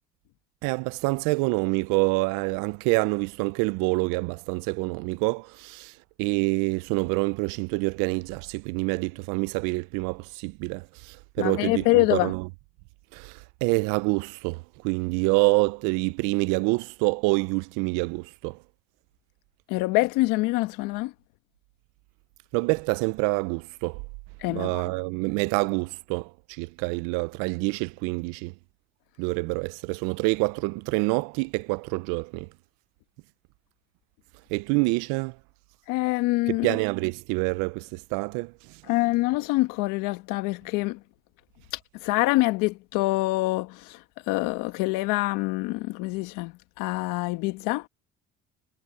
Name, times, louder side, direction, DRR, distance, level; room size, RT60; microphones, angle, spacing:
voice 1, 0.6-12.5 13.1-18.6 22.5-24.0 24.5-28.5 29.2-32.5 34.5-35.4 36.5-38.8, right 26 dB, 80° right, 0.6 m, -27 dB
voice 2, 11.4-12.3 19.7-21.1 24.4-24.9 35.9-36.7 38.9-41.0 42.0-47.9, left 21 dB, 80° left, 1.5 m, -25 dB
supercardioid pair, 70°, 31 cm